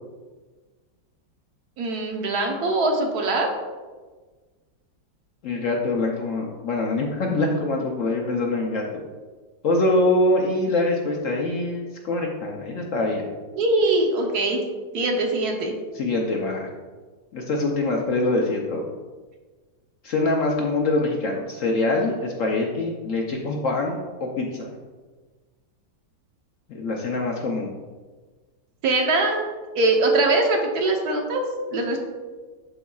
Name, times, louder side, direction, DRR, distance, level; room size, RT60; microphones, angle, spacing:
voice 1, 1.8-3.5 13.6-14.6 14.9-15.7 28.8-29.4 29.7-31.4 31.7-32.0, right 2 dB, 65° right, 2 dB, 1.3 m, -22 dB
voice 2, 5.4-9.0 9.6-13.2 15.9-16.7 17.3-18.8 20.0-24.7 26.7-27.7, left 2 dB, 60° left, 0 dB, 0.9 m, -24 dB
11.0 x 4.1 x 2.3 m, 1.4 s
omnidirectional pair, 1.8 m